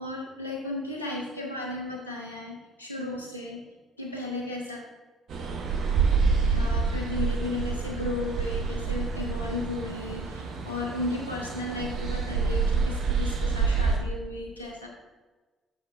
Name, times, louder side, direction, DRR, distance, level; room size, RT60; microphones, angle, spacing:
voice 1, 0.0-3.6 4.0-4.8 6.4-14.9, left 2 dB, 90° left, -1 dB, 0.9 m, -34 dB
sound 1, 5.3-14.0, right 5 dB, 55° right, 1.0 m, -27 dB
6.8 x 6.3 x 3.6 m, 1.2 s
figure-of-eight pair, 45°, 0 cm